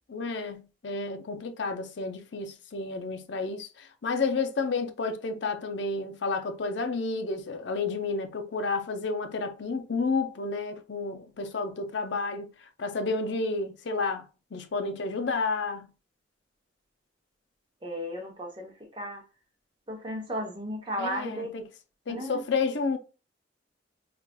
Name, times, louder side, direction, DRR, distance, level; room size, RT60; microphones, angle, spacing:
voice 1, 0.1-12.5 12.8-14.2 14.5-15.9 21.0-21.6 22.1-23.0, left 4 dB, 70° left, 0.5 m, -31 dB
voice 2, 17.8-19.2 19.9-21.5 22.1-22.4, equal, 25° right, 0.8 m, -35 dB
4.6 x 2.4 x 2.2 m
head